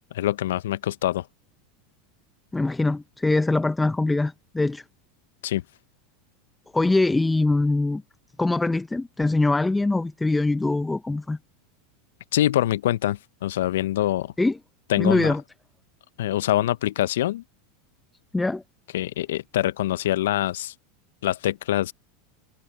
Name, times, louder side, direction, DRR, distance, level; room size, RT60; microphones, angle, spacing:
voice 1, 0.1-1.2 5.4-5.6 12.3-14.3 14.9-15.3 16.2-17.4 18.9-20.7 21.2-21.9, left 13 dB, 70° left, 1.0 m, -24 dB
voice 2, 2.5-4.8 6.7-8.0 8.4-11.4 14.4-14.6 15.0-15.4 18.3-18.6, left 2 dB, 10° left, 0.8 m, -23 dB
hypercardioid pair, 90°, 0 cm